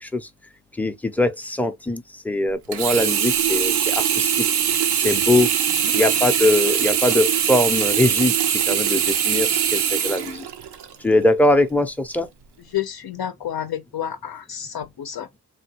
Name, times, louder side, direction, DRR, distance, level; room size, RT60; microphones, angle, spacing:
voice 1, 0.8-4.5 4.9-5.5 5.9-8.3 8.7-10.5 11.0-12.3, left 1 dB, 5° left, 0.5 m, -21 dB
Sink (filling or washing), 2.7-11.0 11.5-11.6, right 9 dB, 85° right, 0.6 m, -22 dB
voice 2, 12.7-15.4, left 10 dB, 70° left, 0.6 m, -30 dB
3.4 x 2.3 x 2.8 m
cardioid pair, 80°, 39 cm